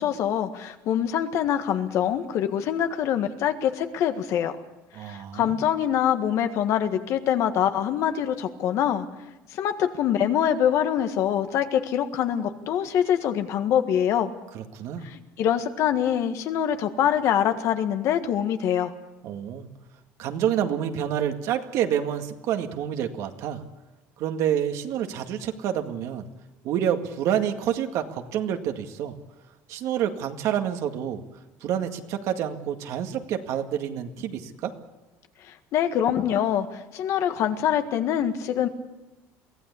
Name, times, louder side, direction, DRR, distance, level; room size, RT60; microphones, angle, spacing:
voice 1, 0.0-4.5 5.0-9.1 9.5-14.3 15.0-18.9 35.5-38.7, left 9 dB, 55° left, 8 dB, 1.7 m, -24 dB
voice 2, 4.9-5.6 14.5-15.1 19.2-19.7 20.2-23.6 24.2-26.3 26.6-29.1 29.7-31.2 31.6-34.7, right 9 dB, 60° right, 6 dB, 2.0 m, -28 dB
23.0 x 16.0 x 8.5 m, 1.1 s
cardioid pair, 140°, 6 cm